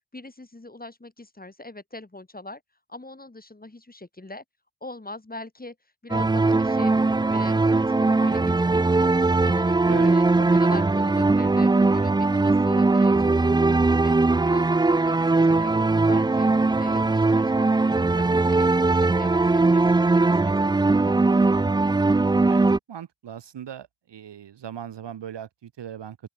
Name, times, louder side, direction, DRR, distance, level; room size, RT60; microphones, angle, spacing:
voice 1, 0.1-2.6 2.9-4.4 4.8-5.8 6.0-6.9 7.3-9.1 9.4-14.2 14.4-16.5 16.8-21.2, left 2 dB, 20° left, 2.6 m, -41 dB
sound 1, 6.1-22.8, right 3 dB, 10° right, 0.4 m, -20 dB
voice 2, 22.5-26.2, right 9 dB, 60° right, 1.1 m, -38 dB
open air
cardioid pair, 55°, 48 cm